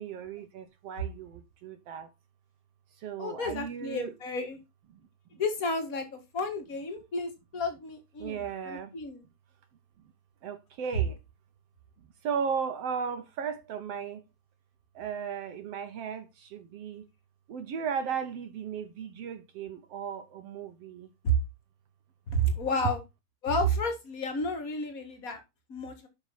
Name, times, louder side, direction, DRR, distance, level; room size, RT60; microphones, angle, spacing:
voice 1, 0.0-2.1 3.0-4.1 8.2-8.9 10.4-11.2 12.2-14.2 15.0-17.1 17.5-21.1, right 7 dB, 65° right, 1.8 m, -36 dB
voice 2, 3.2-4.6 5.4-9.2 21.2-21.4 22.3-23.0 23.4-25.4 25.7-26.1, equal, 35° left, 1.8 m, -31 dB
11.0 x 6.2 x 4.2 m
omnidirectional pair, 3.4 m